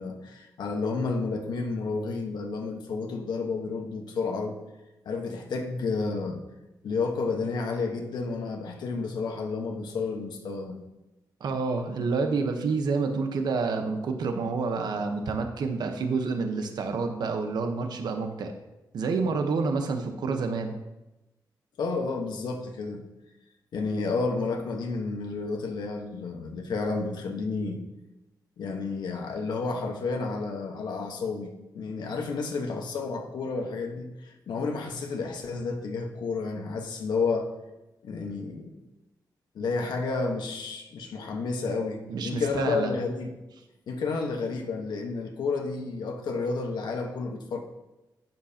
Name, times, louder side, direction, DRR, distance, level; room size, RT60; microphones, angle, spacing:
voice 1, 0.0-4.6 5.0-6.4 6.8-10.8 21.8-23.0 23.7-27.8 28.6-37.5 38.0-38.7 39.5-43.3 43.9-47.6, left 4 dB, 75° left, 2 dB, 1.2 m, -31 dB
voice 2, 11.4-18.5 18.9-20.8 42.1-42.9, right 4 dB, 70° right, 5 dB, 1.0 m, -28 dB
12.0 x 9.0 x 2.9 m, 1.0 s
wide cardioid pair, 155°, 7 cm